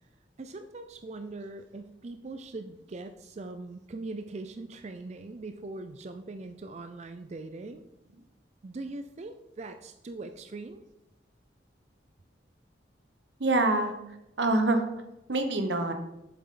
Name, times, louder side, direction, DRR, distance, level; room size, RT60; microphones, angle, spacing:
voice 1, 0.4-7.8 8.6-10.8, right 2 dB, 40° right, 8 dB, 0.4 m, -41 dB
voice 2, 13.4-13.9 14.4-14.8 15.3-15.9, right 2 dB, 80° right, 6 dB, 1.1 m, -25 dB
7.5 x 7.1 x 3.8 m, 0.91 s
head